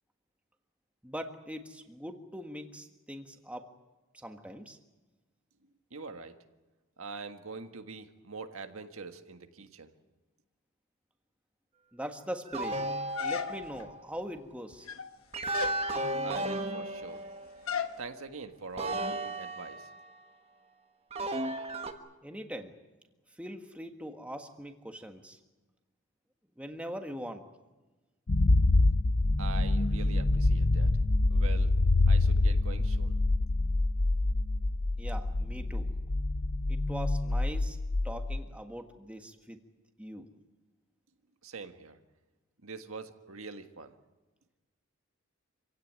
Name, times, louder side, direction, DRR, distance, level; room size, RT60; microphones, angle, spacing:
voice 1, 1.0-3.7 4.1-4.8 11.9-12.8 13.2-14.9 22.2-22.8 23.3-25.4 26.6-27.4 35.0-35.9 36.7-37.8 38.0-39.6 40.0-40.3, equal, 5° right, 5 dB, 1.5 m, -41 dB
voice 2, 5.9-6.4 7.0-9.9 16.2-17.3 18.0-19.9 29.4-30.9 31.3-31.7 32.1-33.2 41.4-42.0 42.6-43.9, right 4 dB, 85° right, 7 dB, 1.6 m, -43 dB
sound 1, 12.5-14.0 15.3-17.7 18.8-20.2 21.1-21.9, right 1 dB, 30° right, 1.5 m, -34 dB
sound 2, 13.2-13.9 14.7-15.2 15.5-15.8 17.7-18.0, left 6 dB, 80° left, 1.3 m, -34 dB
sound 3, 28.3-38.4, left 2 dB, 60° left, 0.9 m, -26 dB
26.5 x 16.5 x 9.4 m, 1.2 s
head